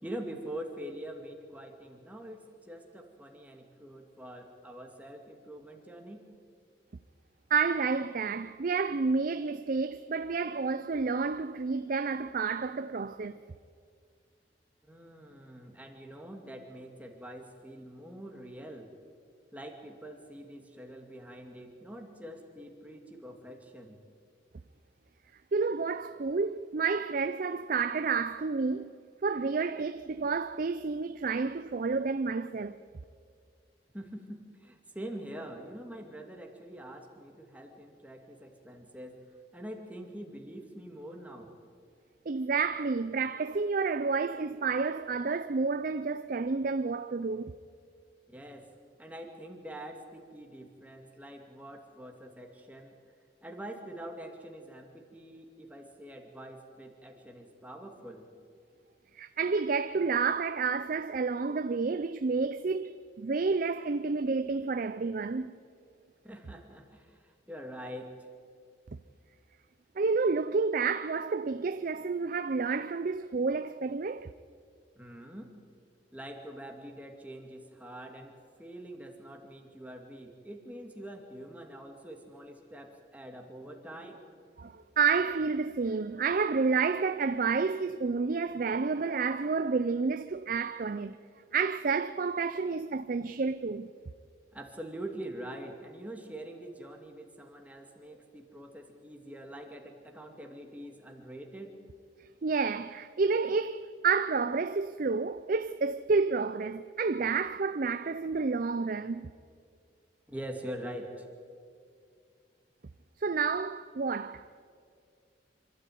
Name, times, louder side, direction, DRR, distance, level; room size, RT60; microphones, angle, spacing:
voice 1, 0.0-6.2 14.9-18.9 19.5-24.0 33.9-39.2 39.5-41.5 48.3-48.7 49.0-52.9 53.4-58.3 66.2-68.1 75.0-75.5 76.1-78.3 78.6-84.2 94.5-101.7 110.3-111.2, right 1 dB, 10° right, 2.4 m, -44 dB
voice 2, 7.5-13.4 25.5-28.9 29.2-32.8 42.3-47.6 59.1-65.5 70.0-74.3 84.6-91.2 91.5-93.9 102.4-109.3 113.2-114.5, right 4 dB, 50° right, 0.5 m, -30 dB
25.5 x 13.0 x 9.3 m
head